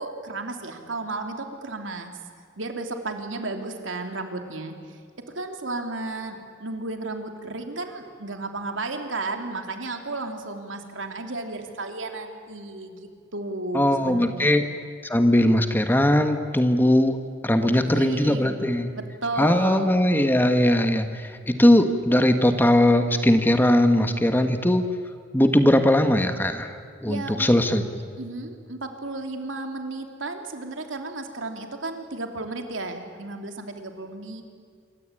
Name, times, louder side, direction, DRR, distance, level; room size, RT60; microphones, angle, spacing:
voice 1, 0.0-2.2 2.6-4.8 5.3-14.6 17.6-18.6 18.9-19.9 27.1-27.5 28.2-34.4, right 3 dB, 85° right, 5 dB, 3.1 m, -33 dB
voice 2, 13.7-14.7 15.0-17.2 17.4-18.9 19.4-24.8 25.3-26.7 27.0-28.0, left 1 dB, 10° left, 7 dB, 1.5 m, -20 dB
26.5 x 24.5 x 9.1 m, 2.1 s
head